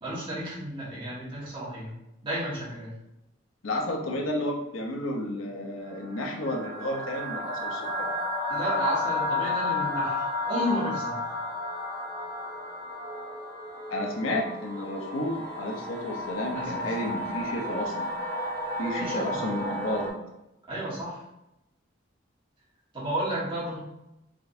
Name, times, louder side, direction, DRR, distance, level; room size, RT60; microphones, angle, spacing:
voice 1, 0.0-1.9 2.2-2.9 8.5-11.2 16.5-16.8 19.0-19.5 20.7-21.2 22.9-23.8, equal, 25° right, -8 dB, 1.4 m, -32 dB
voice 2, 3.6-8.1 13.9-18.1 18.8-20.1, left 1 dB, 90° left, 1 dB, 0.7 m, -31 dB
sound 1, 5.9-20.1, left 2 dB, 10° left, 1.3 m, -33 dB
3.7 x 3.4 x 2.6 m, 0.89 s
head